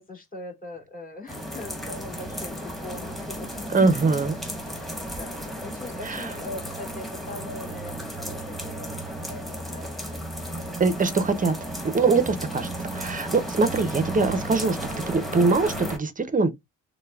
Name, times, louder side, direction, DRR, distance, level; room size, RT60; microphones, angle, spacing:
voice 1, 0.0-10.2, left 2 dB, 30° left, 1.9 m, -41 dB
sound 1, 1.3-16.0, right 1 dB, ahead, 1.3 m, -34 dB
voice 2, 3.7-4.4 6.0-6.3 10.8-11.5 11.9-14.8 15.1-16.5, right 4 dB, 25° right, 0.6 m, -23 dB
6.5 x 2.2 x 2.3 m
cardioid pair, 90°, 30 cm